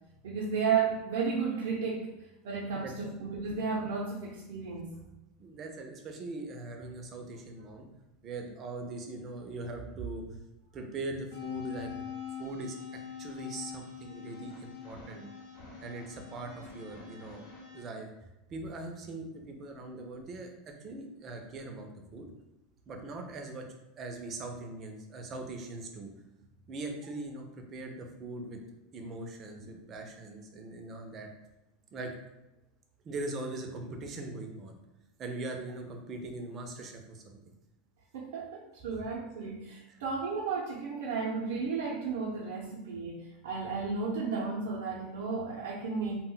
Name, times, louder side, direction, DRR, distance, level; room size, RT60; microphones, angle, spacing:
voice 1, 0.2-2.1 2.4-4.9 29.6-29.7 38.1-46.2, right 5 dB, 85° right, -4 dB, 0.5 m, -33 dB
voice 2, 2.8-3.1 5.4-7.9 8.2-10.4 10.7-12.1 12.4-12.8 13.2-15.3 15.8-17.4 17.7-22.3 22.9-23.7 24.0-26.1 26.7-28.6 28.9-31.3 31.9-32.2 33.0-34.8 35.2-37.4 39.9-40.0, right 2 dB, 30° right, 3 dB, 0.4 m, -41 dB
sound 1, 11.3-17.8, left 7 dB, 60° left, 0.7 m, -44 dB
2.1 x 2.1 x 3.7 m, 0.97 s
supercardioid pair, 160°, 0 cm